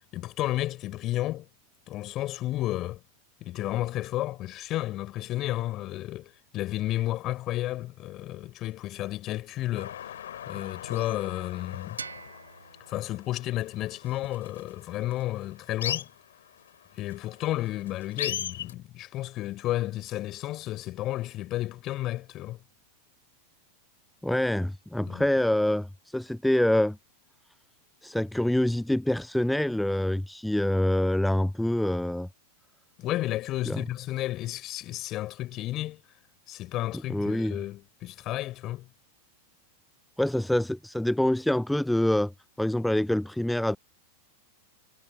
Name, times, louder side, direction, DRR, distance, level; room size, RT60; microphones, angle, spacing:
voice 1, 0.0-1.5 1.9-3.0 3.4-12.0 12.9-16.1 16.9-22.6 25.1-25.2 33.0-36.0 36.5-38.9, left 15 dB, 35° left, 4.6 m, -32 dB
sound 1, 9.8-18.7, left 10 dB, 60° left, 4.8 m, -39 dB
sound 2, 12.0-14.8, right 5 dB, 75° right, 5.4 m, -46 dB
voice 2, 24.2-27.0 28.0-32.3 33.7-33.8 37.1-37.5 40.2-42.3 42.6-43.8, left 1 dB, 5° left, 0.3 m, -26 dB
figure-of-eight pair, 90°, 0 cm